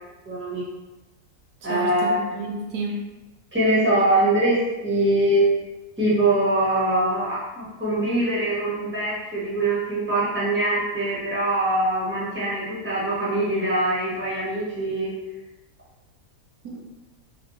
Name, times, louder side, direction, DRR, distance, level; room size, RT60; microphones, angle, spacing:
voice 1, 0.2-0.6 1.6-2.2 3.5-5.4 6.0-15.1, right 1 dB, 10° right, -9 dB, 1.3 m, -23 dB
voice 2, 1.7-3.1 16.6-16.8, right 2 dB, 90° right, 1 dB, 1.2 m, -31 dB
3.5 x 3.4 x 3.1 m, 1.1 s
omnidirectional pair, 1.6 m